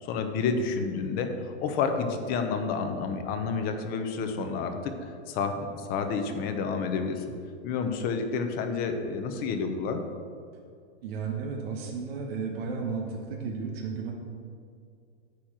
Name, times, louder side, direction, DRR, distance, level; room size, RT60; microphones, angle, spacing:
voice 1, 0.0-4.9 5.3-7.2 7.6-10.0, left 5 dB, 25° left, 6 dB, 0.8 m, -29 dB
voice 2, 11.0-14.1, right 5 dB, 60° right, 0 dB, 1.4 m, -33 dB
9.6 x 4.6 x 7.3 m, 2.3 s
hypercardioid pair, 150°, 34 cm